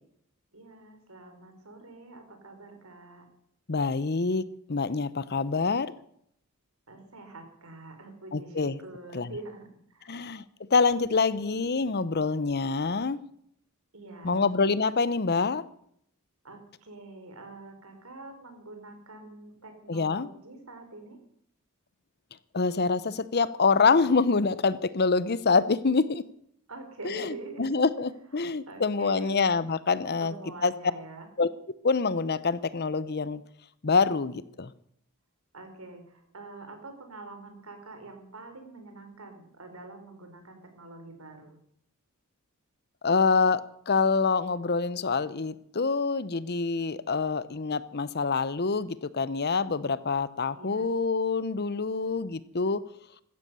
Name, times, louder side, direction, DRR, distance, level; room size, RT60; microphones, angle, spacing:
voice 1, 0.5-3.3 6.9-10.2 13.9-14.5 16.4-21.2 26.7-27.7 28.4-29.5 30.2-31.3 35.5-41.6 50.5-50.9, right 2 dB, 75° right, 6 dB, 4.6 m, -45 dB
voice 2, 3.7-5.9 8.3-8.8 9.1-9.3 10.1-10.4 10.7-13.2 14.2-15.6 19.9-20.3 22.5-26.2 27.0-30.3 30.6-30.7 31.4-31.5 31.8-33.4 33.8-34.7 43.0-52.8, left 4 dB, 50° left, 17 dB, 0.8 m, -26 dB
16.0 x 13.0 x 6.9 m, 0.70 s
head